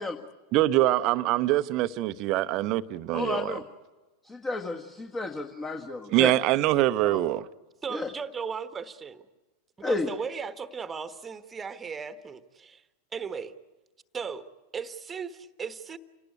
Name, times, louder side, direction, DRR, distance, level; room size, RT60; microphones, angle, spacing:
voice 1, 0.5-3.5 6.1-7.4, right 15 dB, 40° right, 0.7 m, -24 dB
voice 2, 3.1-3.6 4.2-6.3 7.0-7.2 7.9-8.1 9.8-10.1, left 2 dB, 15° left, 1.5 m, -32 dB
voice 3, 7.8-9.2 9.8-12.8 13.1-13.5 14.1-14.4 14.7-16.0, right 6 dB, 15° right, 1.3 m, -36 dB
28.5 x 18.5 x 9.4 m
figure-of-eight pair, 90°, 0 cm